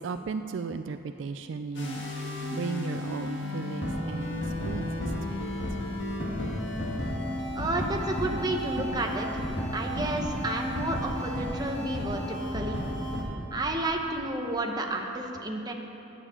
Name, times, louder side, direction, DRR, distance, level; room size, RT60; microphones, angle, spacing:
voice 1, 0.0-2.0 2.5-5.4, right 4 dB, 65° right, 9 dB, 0.3 m, -36 dB
sound 1, 1.7-13.2, left 1 dB, 65° left, 1.6 m, -33 dB
voice 2, 7.5-9.5 9.7-12.8 13.5-15.7, right 1 dB, 20° right, 2 dB, 0.9 m, -31 dB
9.5 x 6.9 x 8.6 m, 3.0 s
head